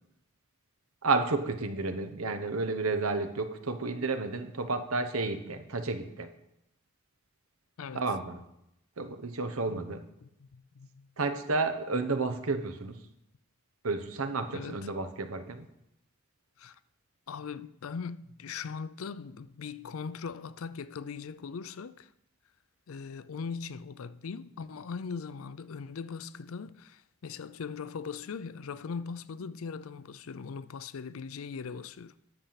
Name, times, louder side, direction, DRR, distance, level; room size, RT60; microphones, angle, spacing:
voice 1, 1.0-6.3 7.9-8.4 9.0-10.0 11.2-13.0 13.8-15.7, right 3 dB, 90° right, 1.0 m, -31 dB
voice 2, 7.8-8.1 9.7-9.9 10.2-11.1 14.5-14.9 16.6-16.8 17.3-22.1 22.9-32.1, left 5 dB, 80° left, 0.5 m, -40 dB
10.0 x 7.0 x 5.7 m
head